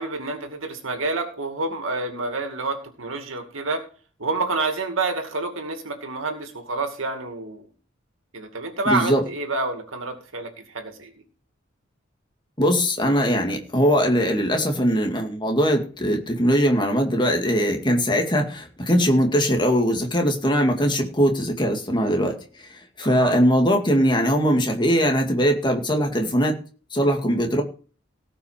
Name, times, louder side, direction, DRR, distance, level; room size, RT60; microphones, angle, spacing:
voice 1, 0.0-3.8 4.2-7.7 8.3-11.1 23.0-23.4, right 3 dB, 75° right, 5 dB, 2.4 m, -28 dB
voice 2, 8.9-9.2 12.6-22.3 23.0-26.6 26.9-27.6, equal, 25° left, 3 dB, 2.2 m, -21 dB
17.5 x 6.0 x 5.0 m, 0.39 s
head